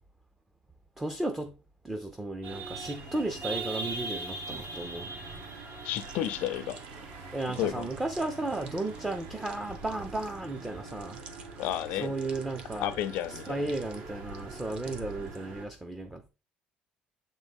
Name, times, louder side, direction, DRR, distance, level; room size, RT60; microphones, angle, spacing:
voice 1, 1.0-1.5 1.8-5.1 7.3-11.2 11.9-12.9 13.3-16.3, right 2 dB, 10° right, 0.4 m, -34 dB
sound 1, 2.4-15.7, right 3 dB, 70° right, 1.3 m, -42 dB
voice 2, 5.8-6.8 7.6-7.9 11.6-12.1 12.8-13.7, left 12 dB, 70° left, 0.5 m, -32 dB
sound 2, 5.9-15.7, right 4 dB, 40° right, 1.0 m, -53 dB
6.8 x 4.0 x 3.5 m
cardioid pair, 160°, 3 cm